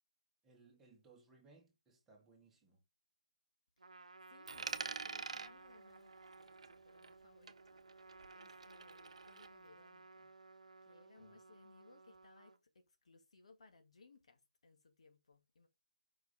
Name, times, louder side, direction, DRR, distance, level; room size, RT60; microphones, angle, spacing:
voice 1, 0.4-2.8 11.2-11.4, right 4 dB, 10° right, 2.0 m, -65 dB
Trumpet, 3.8-12.6, right 3 dB, 85° right, 0.8 m, -59 dB
voice 2, 4.3-10.3 10.8-15.7, left 3 dB, 65° left, 2.0 m, -65 dB
Coin (dropping), 4.5-7.2 7.5-9.5, right 5 dB, 65° right, 0.9 m, -47 dB
5.6 x 4.7 x 4.8 m
figure-of-eight pair, 155°, 4 cm